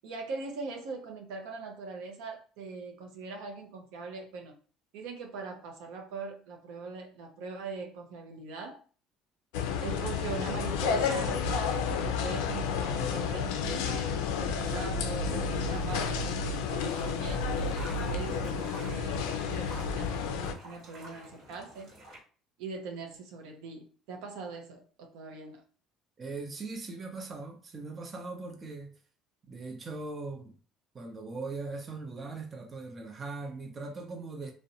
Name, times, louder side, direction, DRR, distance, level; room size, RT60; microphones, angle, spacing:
voice 1, 0.0-4.6 4.9-8.8 9.8-17.5 18.1-21.9 22.6-25.6, right 4 dB, 85° right, 0.5 m, -41 dB
sound 1, 9.5-20.5, left 5 dB, 90° left, 0.3 m, -31 dB
sound 2, 14.6-18.7, left 1 dB, 5° left, 0.6 m, -50 dB
sound 3, 15.2-22.2, right 1 dB, 65° right, 1.1 m, -49 dB
voice 2, 26.2-28.9 29.5-30.5 30.9-34.5, right 3 dB, 35° right, 0.6 m, -40 dB
2.6 x 2.1 x 2.6 m
supercardioid pair, 90°, 0 cm